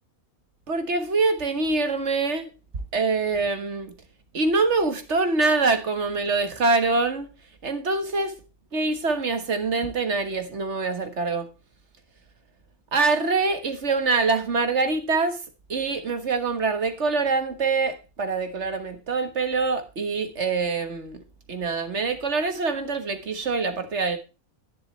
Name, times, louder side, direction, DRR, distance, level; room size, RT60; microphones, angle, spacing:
voice 1, 0.7-2.5 2.9-3.9 4.3-7.3 7.6-8.4 8.7-11.5 12.9-15.4 15.7-21.2 21.5-24.2, right 3 dB, 55° right, 1.7 m, -24 dB
11.0 x 10.5 x 3.2 m
omnidirectional pair, 1.5 m